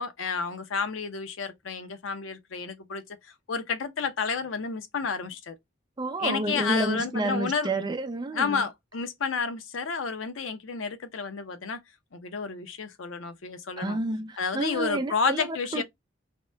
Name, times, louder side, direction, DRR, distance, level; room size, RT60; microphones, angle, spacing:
voice 1, 0.0-5.6 6.2-7.7 8.3-11.8 12.1-14.0 14.4-15.8, left 5 dB, 85° left, 0.6 m, -31 dB
voice 2, 6.0-8.6 13.8-15.8, right 2 dB, 20° right, 0.4 m, -30 dB
2.8 x 2.1 x 3.3 m
head